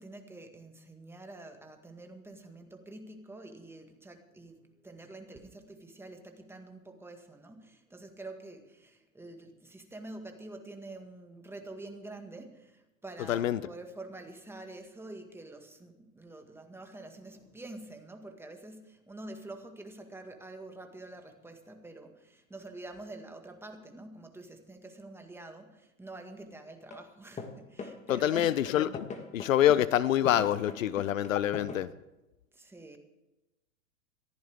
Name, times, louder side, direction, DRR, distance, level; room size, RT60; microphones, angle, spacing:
voice 1, 0.0-28.6 29.2-29.4 32.5-33.0, right 2 dB, 5° right, 5 dB, 1.8 m, -47 dB
voice 2, 13.2-13.7 28.1-28.9 29.3-31.9, left 11 dB, 70° left, 17 dB, 0.8 m, -26 dB
sound 1, 26.9-27.1 27.4-31.8, left 4 dB, 15° left, 1.7 m, -41 dB
22.0 x 15.0 x 3.6 m, 0.99 s
hypercardioid pair, 115°, 41 cm